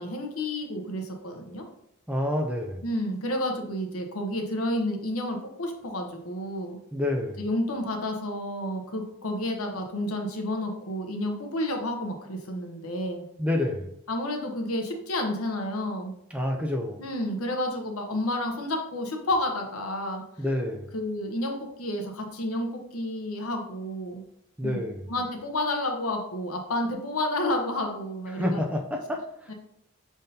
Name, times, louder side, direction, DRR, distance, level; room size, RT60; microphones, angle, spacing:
voice 1, 0.0-1.6 2.8-6.8 7.4-13.2 14.1-16.1 17.0-20.2 20.9-24.2 24.6-24.8 25.1-28.6 29.5-29.6, left 1 dB, 80° left, 3 dB, 0.9 m, -30 dB
voice 2, 2.1-2.8 6.9-7.4 13.4-13.9 16.3-17.0 20.4-20.9 24.6-25.1 28.3-29.5, left 1 dB, 5° right, 2 dB, 0.3 m, -28 dB
5.3 x 3.6 x 2.7 m, 0.75 s
head